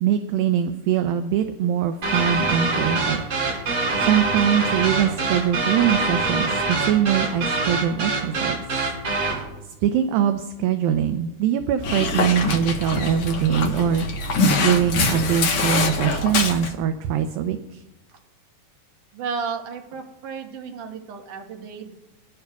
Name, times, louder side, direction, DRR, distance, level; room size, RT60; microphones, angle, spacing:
voice 1, 0.0-3.2 4.0-8.6 9.8-14.1 14.6-17.8, right 9 dB, 80° right, 8 dB, 2.3 m, -22 dB
sound 1, 2.0-9.5, right 3 dB, 40° right, 2.5 m, -24 dB
Dog, 11.8-16.7, left 2 dB, 65° left, 1.4 m, -23 dB
voice 2, 19.1-22.0, right 5 dB, 65° right, 2 dB, 2.5 m, -33 dB
24.0 x 10.5 x 2.3 m, 1.0 s
omnidirectional pair, 4.3 m